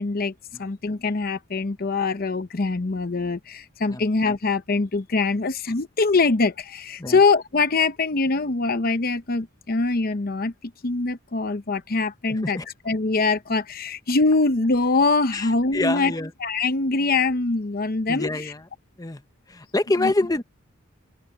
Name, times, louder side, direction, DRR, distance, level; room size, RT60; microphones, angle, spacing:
voice 1, 0.0-12.6 12.9-16.1 16.4-18.5 20.0-20.1, left 3 dB, 50° left, 0.8 m, -23 dB
voice 2, 12.3-12.7 15.3-16.3 18.1-18.7 19.0-19.2 19.5-20.4, left 2 dB, 20° left, 0.9 m, -26 dB
open air
head